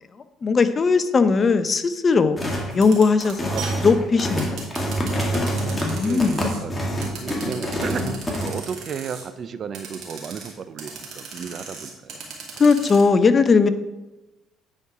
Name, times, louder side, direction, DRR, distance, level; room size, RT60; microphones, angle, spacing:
voice 1, 0.4-2.4 2.7-3.6 3.8-4.9 5.8-6.4 12.6-13.7, left 4 dB, 35° left, 12 dB, 0.6 m, -19 dB
sound 1, 2.4-2.7 3.2-8.5, equal, 15° left, 1.8 m, -26 dB
sound 2, 2.7-6.6 7.0-9.2 9.7-10.5 10.8-13.0, right 6 dB, 70° right, 2.3 m, -37 dB
voice 2, 6.0-12.3, right 6 dB, 50° right, 12 dB, 0.6 m, -34 dB
9.7 x 4.6 x 4.8 m, 1.1 s
supercardioid pair, 90°, 0 cm